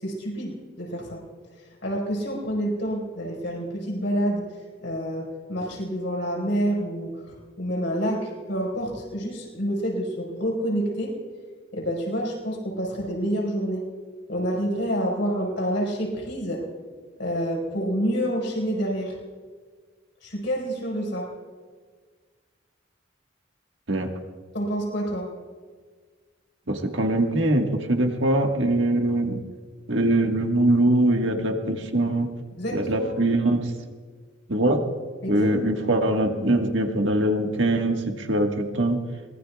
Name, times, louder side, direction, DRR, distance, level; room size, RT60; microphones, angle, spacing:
voice 1, 0.0-1.2 1.8-4.4 4.8-7.1 7.6-11.1 11.7-13.8 14.3-16.6 17.2-19.1 20.2-21.3 24.5-25.3 32.6-33.1 35.2-35.9, equal, 75° left, -2 dB, 5.1 m, -28 dB
voice 2, 26.7-29.4 29.9-32.3 32.7-33.7 34.5-34.8 35.3-39.0, right 1 dB, 80° right, 3 dB, 1.7 m, -22 dB
23.5 x 20.5 x 2.4 m, 1.5 s
head